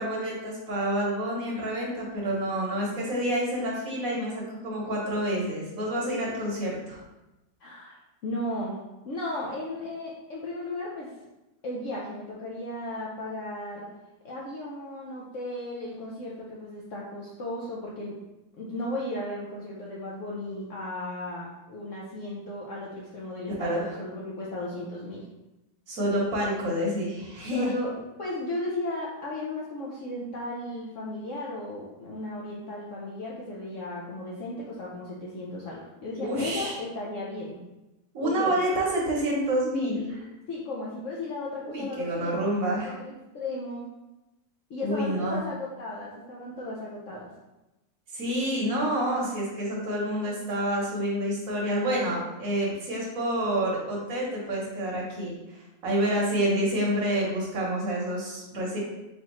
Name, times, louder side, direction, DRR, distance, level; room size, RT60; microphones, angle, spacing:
voice 1, 0.0-7.0 23.6-23.8 25.9-27.7 36.2-36.8 38.1-40.3 41.6-42.9 44.8-45.4 48.1-58.8, right 1 dB, 55° right, -3 dB, 1.2 m, -28 dB
voice 2, 7.6-8.0 8.2-8.8 9.1-11.1 11.6-13.9 14.2-18.2 18.6-25.3 27.5-27.9 28.2-37.6 38.2-38.5 40.5-42.4 42.7-43.9 44.7-47.3, left 1 dB, 85° left, -4 dB, 0.6 m, -35 dB
4.2 x 3.5 x 2.9 m, 0.99 s
omnidirectional pair, 2.0 m